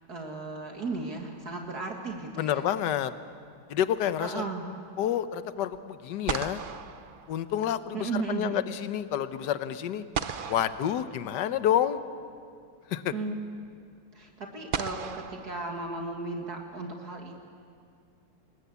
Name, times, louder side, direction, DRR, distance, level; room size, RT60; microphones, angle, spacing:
voice 1, 0.1-2.7 4.2-4.7 7.9-8.6 13.1-13.4 14.1-17.4, right 3 dB, 55° right, 1 dB, 2.4 m, -35 dB
sound 1, 0.8-1.7 5.7-5.8 6.3-8.0 10.1-11.7 13.1-13.2 14.7-16.4, right 6 dB, 90° right, 0.4 m, -37 dB
voice 2, 2.4-3.1 3.7-4.4 5.0-6.6 7.3-10.0 10.5-12.0 12.9-13.1, left 10 dB, 65° left, 11 dB, 1.5 m, -29 dB
29.0 x 21.0 x 8.3 m, 2.2 s
omnidirectional pair, 2.0 m